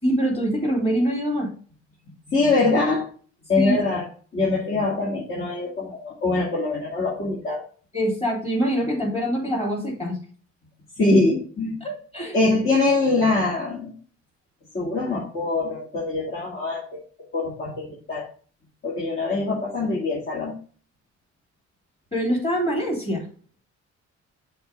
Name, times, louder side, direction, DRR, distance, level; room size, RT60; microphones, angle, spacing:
voice 1, 0.0-1.5 3.6-3.8 7.9-10.2 11.8-12.4 22.1-23.2, equal, 20° left, -1 dB, 3.7 m, -24 dB
voice 2, 2.3-3.1 3.5-4.1 4.3-7.6 11.0-11.8 12.3-13.9 14.7-17.0 17.3-18.3 18.8-20.5, left 3 dB, 45° left, -5 dB, 2.3 m, -23 dB
6.8 x 3.8 x 5.3 m, 0.43 s
cardioid pair, 90°, 30 cm